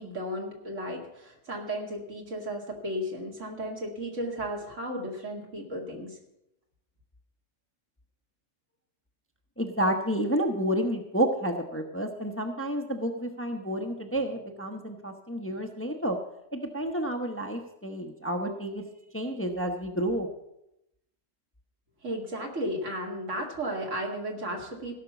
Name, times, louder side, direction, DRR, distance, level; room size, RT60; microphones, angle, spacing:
voice 1, 0.0-6.2 22.0-24.9, equal, 70° right, 0 dB, 2.6 m, -34 dB
voice 2, 9.6-16.2 16.5-18.8 19.1-20.3, right 1 dB, 10° left, 3 dB, 0.8 m, -30 dB
16.0 x 6.0 x 7.0 m, 0.84 s
omnidirectional pair, 1.3 m